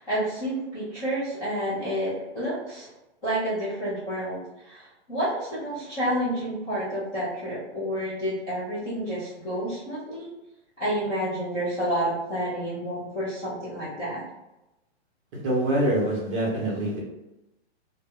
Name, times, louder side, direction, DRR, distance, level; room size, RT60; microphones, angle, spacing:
voice 1, 0.0-2.9 3.2-10.3 10.8-14.2, equal, 10° left, -14 dB, 0.4 m, -29 dB
voice 2, 15.3-17.0, right 1 dB, 25° right, -4 dB, 0.8 m, -25 dB
2.2 x 2.1 x 3.5 m, 0.93 s
hypercardioid pair, 165°, 33 cm